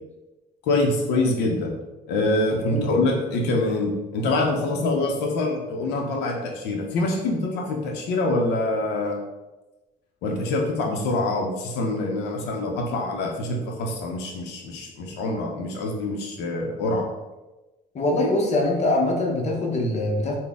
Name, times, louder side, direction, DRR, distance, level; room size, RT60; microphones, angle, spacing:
voice 1, 0.6-1.7 2.1-9.2 10.2-17.0, left 2 dB, 85° left, 1 dB, 0.6 m, -25 dB
voice 2, 17.9-20.4, left 1 dB, 40° left, 0 dB, 0.8 m, -23 dB
4.0 x 2.1 x 3.4 m, 1.1 s
cardioid pair, 110°, 17 cm